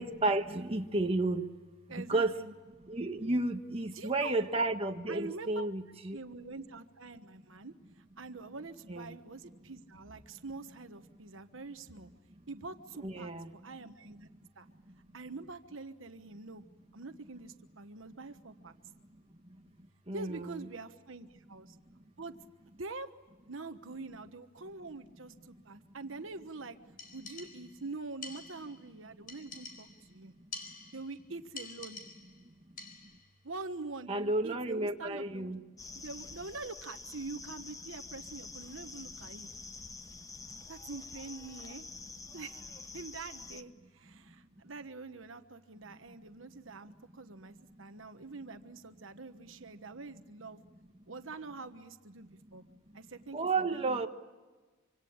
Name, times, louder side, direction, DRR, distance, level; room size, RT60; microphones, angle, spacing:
voice 1, 0.0-1.4 1.9-2.3 2.9-6.2 8.9-9.1 13.0-13.5 20.1-20.7 34.1-35.6 53.3-54.1, right 2 dB, 30° right, 4 dB, 1.5 m, -32 dB
voice 2, 1.9-2.5 3.9-4.4 5.1-5.6 6.1-12.1 12.5-14.3 14.6-14.7 15.1-16.6 16.9-18.7 20.1-21.8 22.2-22.4 22.8-23.1 23.5-26.8 27.1-30.3 30.9-32.0 33.4-35.5 35.9-39.5 40.7-41.8 42.3-50.6 51.1-52.6 52.9-54.1, right 3 dB, 70° right, 8 dB, 1.3 m, -45 dB
sound 1, 27.0-27.8 28.2-28.9 29.3-30.1 30.5-31.2 31.6-32.4 32.8-33.3, left 4 dB, 45° left, 4.4 m, -47 dB
sound 2, 35.8-43.6, left 4 dB, 15° left, 1.1 m, -47 dB
26.0 x 26.0 x 8.8 m, 1.3 s
head